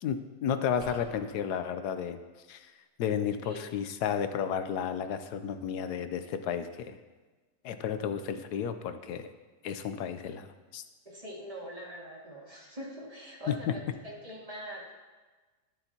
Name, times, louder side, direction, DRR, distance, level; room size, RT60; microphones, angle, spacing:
voice 1, 0.0-2.2 2.5-2.7 3.0-7.0 7.6-9.3 9.6-10.8 13.5-13.6, left 8 dB, 80° left, 9 dB, 1.2 m, -32 dB
sound 1, 0.8-1.3, right 2 dB, 70° right, 2.2 m, -47 dB
voice 2, 11.1-14.9, equal, 20° right, -3 dB, 2.2 m, -43 dB
11.5 x 11.0 x 2.9 m, 1.3 s
omnidirectional pair, 1.7 m